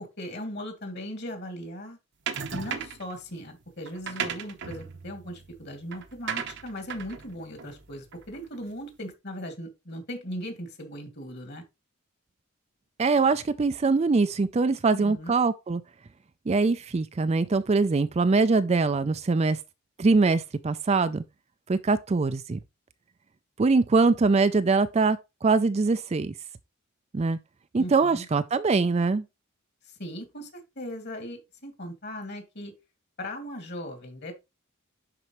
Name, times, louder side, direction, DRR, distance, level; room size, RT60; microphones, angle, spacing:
voice 1, 0.0-2.0 2.5-11.6 14.9-15.4 27.8-28.3 29.8-32.7 33.2-34.3, equal, 50° left, 2.2 m, -38 dB
sound 1, 2.3-3.1 3.8-8.5, right 7 dB, 55° right, 0.9 m, -36 dB
voice 2, 13.0-15.8 16.5-19.6 20.0-21.2 21.7-22.6 23.6-26.3 27.1-27.4 27.7-29.2, right 4 dB, 30° right, 0.4 m, -23 dB
11.0 x 4.4 x 3.0 m
head